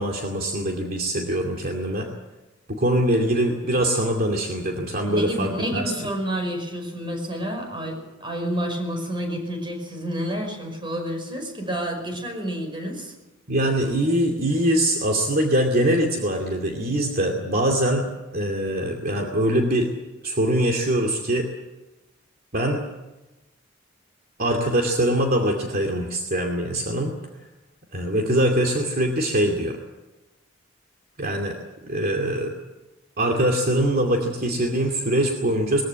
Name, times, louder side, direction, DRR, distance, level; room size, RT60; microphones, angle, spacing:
voice 1, 0.0-2.1 2.7-5.8 13.5-19.9 20.2-21.5 22.5-22.8 24.4-27.1 27.9-29.8 31.2-31.6 31.9-32.5 33.2-35.8, right 1 dB, 50° right, 2 dB, 2.5 m, -23 dB
voice 2, 5.1-13.1, equal, 25° right, 3 dB, 5.5 m, -29 dB
21.5 x 15.0 x 9.3 m, 1.1 s
head